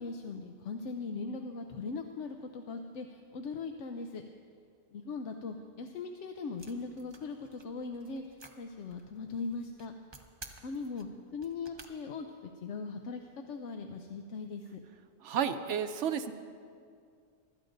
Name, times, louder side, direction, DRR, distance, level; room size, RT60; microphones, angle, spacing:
voice 1, 0.0-4.2 4.9-10.0 10.6-12.3 12.6-13.2 13.5-14.8, left 4 dB, 80° left, 5 dB, 1.0 m, -40 dB
sound 1, 6.6-11.9, right 2 dB, 25° right, 0.8 m, -54 dB
voice 2, 15.2-16.3, right 8 dB, 80° right, 9 dB, 1.0 m, -31 dB
24.0 x 13.0 x 2.6 m, 2.3 s
omnidirectional pair, 1.2 m